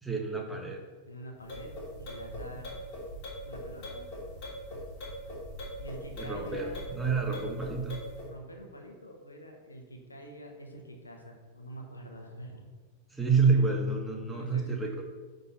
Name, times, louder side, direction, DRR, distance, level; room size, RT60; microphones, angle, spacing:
voice 1, 0.0-0.8 6.2-8.0 13.1-15.0, right 4 dB, 5° right, 1 dB, 1.3 m, -28 dB
voice 2, 1.1-2.7 3.4-4.1 5.8-6.8 7.9-12.7 13.7-13.8 14.3-14.8, right 1 dB, 80° left, 2 dB, 1.2 m, -46 dB
sound 1, 1.4-8.3, equal, 40° left, 2.6 m, -41 dB
11.0 x 4.0 x 4.1 m, 1.3 s
figure-of-eight pair, 90°, 0 cm